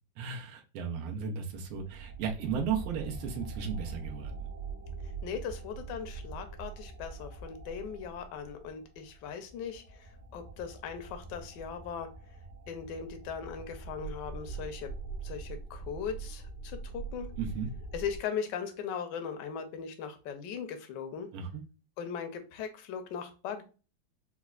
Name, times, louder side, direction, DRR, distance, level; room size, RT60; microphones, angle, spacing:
voice 1, 0.2-4.5 17.4-17.7 21.3-21.6, right 6 dB, 85° right, 2 dB, 1.5 m, -35 dB
sound 1, 1.5-18.2, right 4 dB, 70° right, 1.5 m, -43 dB
voice 2, 5.2-12.1 12.7-14.9 15.2-17.3 17.9-21.3 22.0-23.7, left 7 dB, 70° left, 7 dB, 1.1 m, -39 dB
4.2 x 2.1 x 2.3 m, 0.34 s
omnidirectional pair, 2.2 m